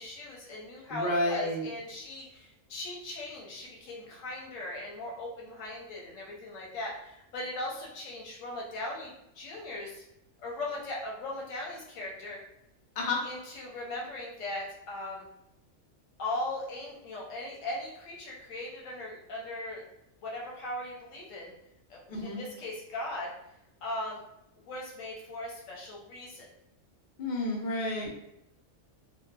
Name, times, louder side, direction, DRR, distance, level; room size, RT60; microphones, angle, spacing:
voice 1, 0.0-10.0 10.4-12.4 13.2-15.3 16.2-19.8 20.2-21.5 21.9-23.3 23.8-24.2 24.6-26.5, left 1 dB, 85° left, -2 dB, 1.1 m, -39 dB
voice 2, 0.9-1.7 13.0-13.2 22.1-22.4 27.2-28.1, left 1 dB, 55° left, -1 dB, 0.7 m, -30 dB
2.8 x 2.1 x 2.2 m, 0.84 s
omnidirectional pair, 1.3 m